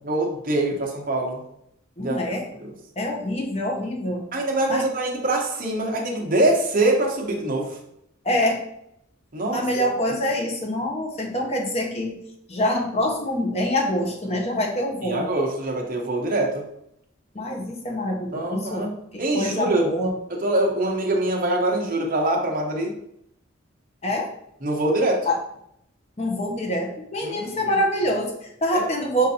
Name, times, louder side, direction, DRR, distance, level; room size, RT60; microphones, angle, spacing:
voice 1, 0.0-1.4 2.0-2.7 4.3-7.8 9.3-10.2 15.0-16.6 18.3-18.9 19.2-19.9 20.3-22.9 24.6-25.3 27.2-27.8 28.7-28.8, right 1 dB, 45° right, 0 dB, 0.9 m, -24 dB
voice 2, 2.0-2.4 3.0-4.3 4.7-4.8 8.2-8.6 9.5-12.2 12.5-15.2 17.3-18.9 19.1-20.1 24.0-24.3 25.3-25.4 26.2-29.3, equal, 30° left, 1 dB, 0.8 m, -25 dB
6.4 x 2.6 x 2.8 m, 0.75 s
head